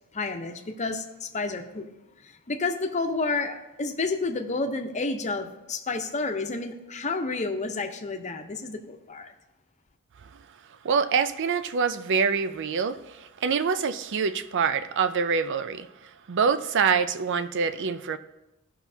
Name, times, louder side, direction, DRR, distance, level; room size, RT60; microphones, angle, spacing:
voice 1, 0.1-1.9 2.2-9.3, left 3 dB, 35° left, 4 dB, 0.7 m, -30 dB
voice 2, 10.8-15.9 16.3-18.2, right 6 dB, 55° right, 12 dB, 0.5 m, -25 dB
15.0 x 5.8 x 2.7 m, 0.97 s
head